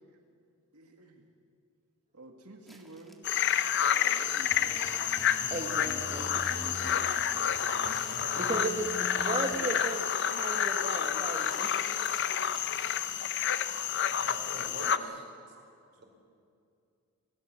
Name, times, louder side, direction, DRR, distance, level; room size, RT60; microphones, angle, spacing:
voice 1, 0.7-1.2 2.1-4.9 14.8-15.2, right 2 dB, 90° right, 2 dB, 2.2 m, -50 dB
sound 1, 2.7-5.6 6.0-8.9 9.1-13.5 13.8-14.7, equal, ahead, 1.9 m, -55 dB
sound 2, 3.2-15.0, left 8 dB, 50° left, 0.8 m, -29 dB
sound 3, 4.5-9.8, equal, 15° right, 2.1 m, -44 dB
voice 2, 5.5-6.5 8.4-8.9 9.1-11.9, right 2 dB, 30° right, 1 dB, 1.7 m, -36 dB
voice 3, 8.1-8.6 14.1-15.2 15.5-15.6 16.0-16.1, right 1 dB, 50° right, 2 dB, 4.9 m, -46 dB
28.0 x 17.5 x 7.7 m, 2.4 s
head